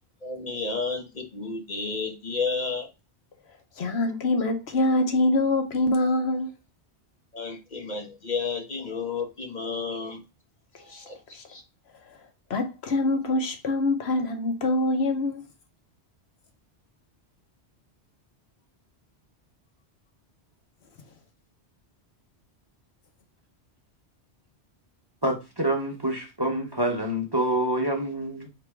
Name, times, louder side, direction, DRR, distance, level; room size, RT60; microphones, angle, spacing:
voice 1, 0.2-2.9 7.3-10.2 10.9-11.2 11.5-11.6, left 4 dB, 45° left, 1.2 m, -31 dB
voice 2, 3.8-6.5 10.7-11.0 11.3-11.4 11.9-15.4, left 2 dB, 70° left, 1.1 m, -25 dB
voice 3, 25.2-28.5, right 1 dB, 25° right, 0.9 m, -27 dB
3.4 x 2.9 x 4.6 m
omnidirectional pair, 1.1 m